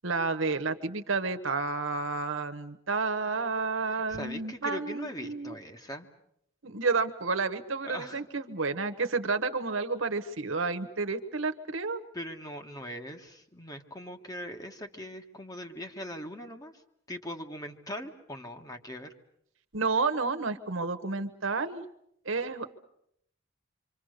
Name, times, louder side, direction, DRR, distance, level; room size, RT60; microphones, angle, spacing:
voice 1, 0.0-5.5 6.6-12.0 19.7-21.9 22.2-22.7, right 4 dB, 80° right, 9 dB, 1.3 m, -30 dB
voice 2, 3.9-6.1 7.8-8.2 12.1-16.8 17.1-19.1, equal, 20° left, 5 dB, 1.6 m, -41 dB
26.5 x 25.5 x 6.6 m, 0.74 s
head